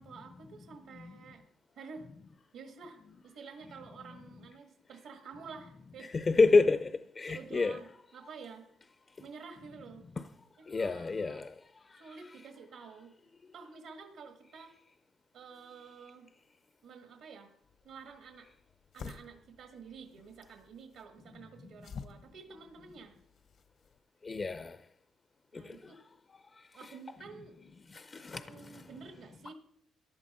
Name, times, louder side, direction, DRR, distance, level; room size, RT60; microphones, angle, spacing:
voice 1, 0.0-1.4 1.7-2.1 2.5-6.6 7.3-8.7 9.2-10.1 10.6-11.4 11.9-13.1 13.5-14.7 15.3-16.3 16.8-17.5 17.8-18.5 18.9-23.2 25.5-26.0 26.7-27.5 28.3-29.5, right 5 dB, 85° right, 1.7 m, -50 dB
voice 2, 6.1-6.9 7.2-7.7 10.7-11.5 24.2-24.8 25.6-25.8 26.8-26.9 27.9-28.4 28.7-28.8, left 3 dB, 35° left, 0.5 m, -28 dB
sound 1, 17.6-24.0, left 6 dB, 65° left, 1.0 m, -51 dB
14.5 x 10.5 x 4.3 m
cardioid pair, 90°, 0 cm